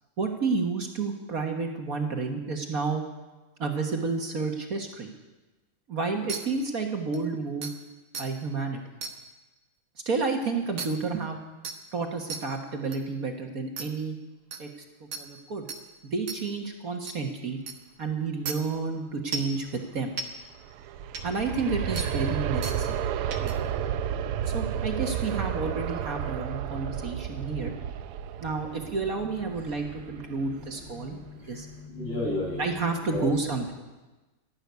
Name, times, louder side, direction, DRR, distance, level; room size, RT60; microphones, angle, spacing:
voice 1, 0.2-3.0 3.6-5.1 5.9-7.7 8.2-8.8 10.0-11.4 11.9-14.2 14.6-14.7 15.0-15.6 16.0-17.6 18.0-20.1 21.2-22.9 23.4-23.5 24.5-27.7 28.4-31.2 31.5-31.7 32.6-33.7, right 4 dB, 45° right, 3 dB, 1.6 m, -30 dB
sound 1, 6.3-6.4 7.1-7.2 7.6-7.7 8.1-8.3 9.0-9.1 10.8-10.9 11.6-11.8 12.3-12.4 12.9-13.0 13.8-13.9 14.5-14.6 15.1-15.2 15.7-15.8 16.3-16.4 17.1-17.2 17.7-17.8 18.5-18.6 19.3-19.5 20.2-20.3 21.1-21.2 22.0-22.1 22.6-22.8 23.3-23.5, right 5 dB, 65° right, 2.1 m, -34 dB
Aircraft, 20.4-31.3 31.7-31.8, right 9 dB, 85° right, 1.6 m, -32 dB
voice 2, 30.5-32.6 33.1-33.2, left 2 dB, 85° left, -3 dB, 7.1 m, -34 dB
12.5 x 11.5 x 9.4 m, 1.1 s
omnidirectional pair, 2.4 m